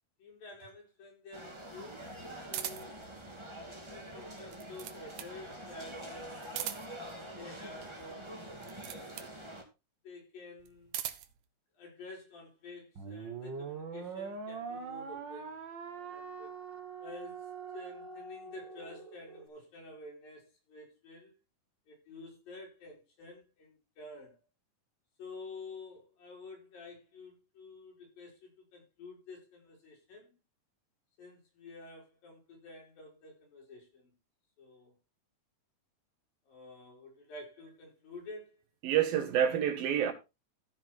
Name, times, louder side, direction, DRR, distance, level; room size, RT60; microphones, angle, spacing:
voice 1, 0.2-2.0 2.5-3.0 3.7-6.5 7.1-8.5 10.0-11.0 11.7-15.6 15.9-16.6 17.0-17.5 17.7-21.4 21.9-24.4 25.2-30.4 31.2-34.1 34.6-34.9 36.5-38.6, left 3 dB, 75° left, 6.2 m, -50 dB
sound 1, 1.3-9.6, right 1 dB, 10° right, 1.7 m, -46 dB
sound 2, 2.5-3.0 4.3-5.4 6.4-7.1 8.6-9.4 10.6-11.4, right 11 dB, 70° right, 2.2 m, -40 dB
sound 3, 13.0-19.5, right 5 dB, 50° right, 1.5 m, -43 dB
voice 2, 38.8-40.1, right 9 dB, 85° right, 3.3 m, -28 dB
14.5 x 6.2 x 4.3 m
omnidirectional pair, 4.0 m